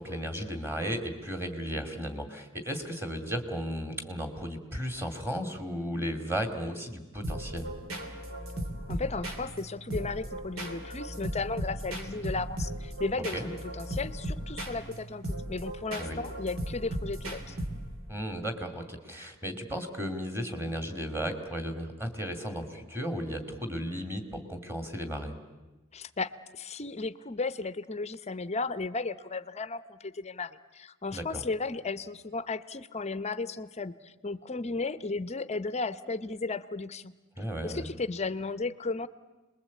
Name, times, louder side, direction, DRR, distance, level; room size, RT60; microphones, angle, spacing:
voice 1, 0.0-7.7 13.2-13.5 16.0-16.2 18.1-25.3 31.1-31.4 37.4-37.9, equal, 10° right, 6 dB, 2.4 m, -35 dB
sound 1, 7.2-18.1, right 1 dB, 70° right, 3.0 m, -37 dB
voice 2, 8.9-17.6 25.9-37.1 37.6-39.1, left 3 dB, 30° left, 13 dB, 0.8 m, -35 dB
27.5 x 21.0 x 8.4 m, 1.1 s
head